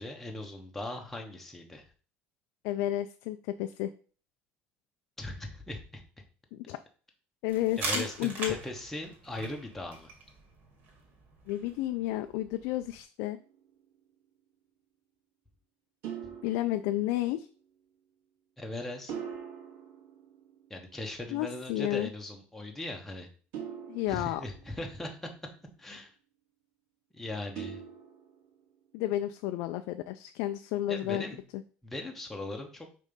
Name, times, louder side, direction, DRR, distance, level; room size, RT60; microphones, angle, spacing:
voice 1, 0.0-1.8 5.2-6.0 7.8-10.1 18.6-19.1 20.7-23.3 24.1-25.3 25.8-26.1 27.1-27.8 30.9-31.4 31.8-32.9, left 1 dB, 5° left, 1 dB, 1.0 m, -39 dB
voice 2, 2.6-3.9 6.5-6.8 7.4-8.6 11.5-13.4 16.4-17.5 21.3-22.1 23.9-24.4 28.9-31.2 31.5-31.6, left 14 dB, 85° left, 8 dB, 0.4 m, -31 dB
sound 1, 7.5-13.0, right 2 dB, 45° right, 2.1 m, -41 dB
sound 2, 13.3-13.8 16.0-17.5 19.1-21.0 23.5-25.2 27.6-28.7, right 8 dB, 75° right, 2.2 m, -43 dB
5.2 x 3.8 x 5.2 m, 0.40 s
cardioid pair, 160°, 4 cm